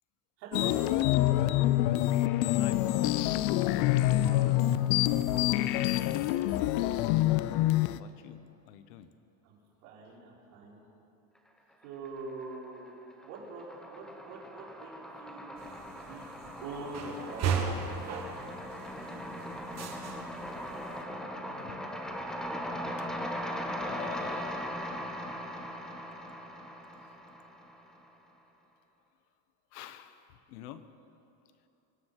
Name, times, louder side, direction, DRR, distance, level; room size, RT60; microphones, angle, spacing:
voice 1, 0.4-0.9 4.3-4.7 9.4-10.8 11.8-12.9 13.2-15.5 16.0-16.3 16.6-17.7, right 3 dB, 75° right, -4 dB, 4.9 m, -44 dB
sound 1, 0.5-8.0, left 15 dB, 60° left, 0.6 m, -26 dB
voice 2, 2.5-3.2 6.5-9.1 19.8-20.0 21.5-21.8 23.8-24.7 29.7-30.8, left 11 dB, 85° left, 11 dB, 1.1 m, -48 dB
sound 2, 11.8-12.6 12.9-28.0, equal, ahead, 1.1 m, -39 dB
sound 3, 15.6-21.0, right 6 dB, 35° right, 1.6 m, -37 dB
24.5 x 9.9 x 5.8 m, 2.9 s
cardioid pair, 160°, 45 cm